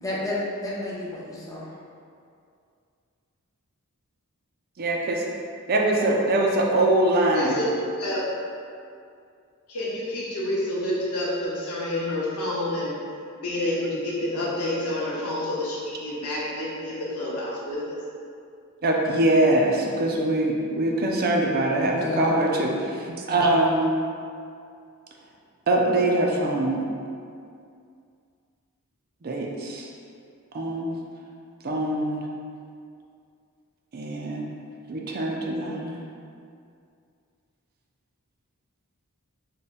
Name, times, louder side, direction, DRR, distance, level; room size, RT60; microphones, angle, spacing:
voice 1, 0.0-1.7 21.9-22.4, left 2 dB, 15° left, -6 dB, 0.6 m, -30 dB
voice 2, 4.8-5.2 5.7-7.6 18.8-23.9 25.7-26.8 29.2-29.9 30.5-30.9 31.6-32.2 33.9-34.5 34.9-36.0, right 1 dB, 45° right, 0 dB, 0.4 m, -23 dB
voice 3, 7.3-8.2 9.7-13.0 13.4-18.0, left 1 dB, 90° left, -6 dB, 0.9 m, -28 dB
3.5 x 2.2 x 4.1 m, 2.4 s
head